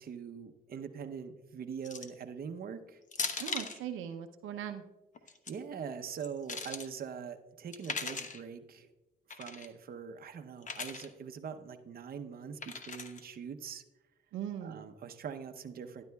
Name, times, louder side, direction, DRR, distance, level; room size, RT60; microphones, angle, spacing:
voice 1, 0.0-3.0 5.5-8.9 9.3-13.8 14.6-16.0, right 7 dB, 50° right, 7 dB, 0.8 m, -43 dB
sound 1, 1.8-2.2 3.1-3.8 5.1-5.5 6.1-6.9 7.7-8.4 9.3-9.7 10.6-11.1 12.6-13.2, left 4 dB, 40° left, 0.9 m, -39 dB
voice 2, 3.4-4.8 14.3-14.9, right 9 dB, 90° right, 6 dB, 0.7 m, -39 dB
12.5 x 10.5 x 2.3 m, 1.0 s
cardioid pair, 90°, 20 cm